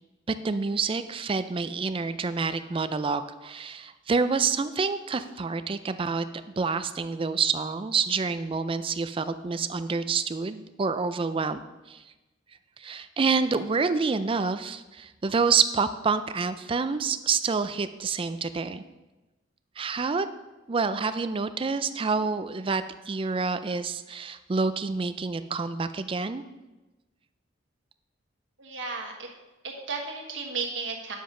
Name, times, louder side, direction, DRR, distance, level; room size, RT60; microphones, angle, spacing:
voice 1, 0.4-6.3 6.6-11.6 11.9-12.0 12.8-18.8 19.8-20.3 20.7-26.4, right 4 dB, 30° right, 11 dB, 0.4 m, -27 dB
voice 2, 28.6-29.3 29.6-31.2, right 4 dB, 80° right, 1 dB, 1.5 m, -34 dB
9.6 x 7.2 x 3.8 m, 1.1 s
head